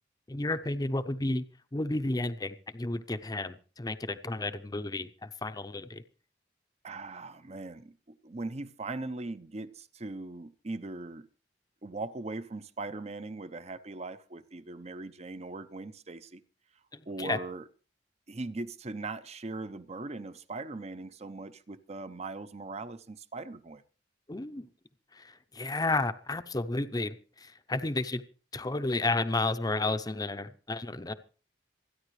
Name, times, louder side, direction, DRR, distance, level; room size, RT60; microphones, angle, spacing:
voice 1, 0.3-1.5 1.7-6.0 16.9-17.4 24.3-24.7 25.1-27.1 27.4-28.2 28.5-31.1, left 2 dB, 20° left, 0.7 m, -32 dB
voice 2, 6.8-11.3 11.8-16.4 17.1-17.6 18.3-23.8, right 3 dB, 40° right, 0.7 m, -40 dB
26.5 x 10.0 x 3.2 m
head